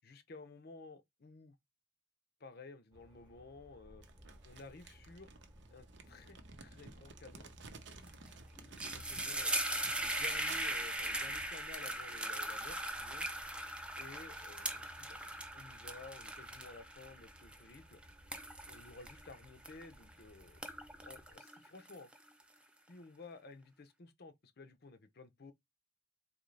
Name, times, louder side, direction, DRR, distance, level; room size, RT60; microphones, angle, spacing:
voice 1, 0.0-1.6 2.4-4.0 4.4-5.3 5.7-7.5 8.6-9.5 10.0-13.3 14.0-18.0 18.7-20.6 21.0-22.1 22.9-25.5, left 3 dB, 50° left, 0.6 m, -54 dB
sound 1, 2.9-21.4, equal, 25° right, 1.0 m, -60 dB
Crumpling crinkling, 4.0-9.4 9.7-11.7, right 5 dB, 60° right, 0.6 m, -55 dB
sound 2, 8.1-8.3 8.6-20.1 20.5-22.4, right 1 dB, 5° right, 0.4 m, -40 dB
3.9 x 2.9 x 3.2 m
head